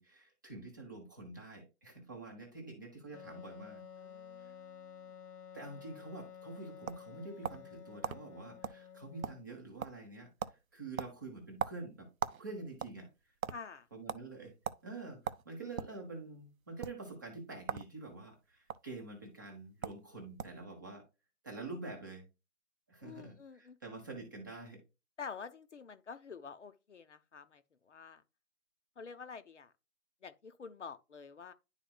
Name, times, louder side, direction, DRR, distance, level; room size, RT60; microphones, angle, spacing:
voice 1, 0.0-3.8 4.4-4.5 5.5-12.1 12.4-13.3 13.9-14.5 14.8-21.0 21.4-22.2 22.9-24.8, right 3 dB, 15° right, 0.8 m, -47 dB
Wind instrument woodwind instrument, 3.1-9.6, left 8 dB, 85° left, 1.0 m, -52 dB
voice 2, 4.0-4.8 13.5-13.9 23.0-23.8 25.2-28.2 29.0-29.7 30.2-31.5, left 5 dB, 50° left, 0.8 m, -48 dB
sound 1, 6.3-7.7 8.0-8.2 8.6-8.8 9.1-9.6 9.8-10.1 10.4-10.6 11.0-12.4 12.7-13.6 14.1-14.2 14.6-14.8 15.2-16.0 16.7-16.9 17.6-17.9 18.2-18.8 19.5-19.6 19.8-20.0 20.4-20.6, right 7 dB, 65° right, 0.7 m, -38 dB
10.5 x 4.1 x 2.3 m
figure-of-eight pair, 160°, 45 cm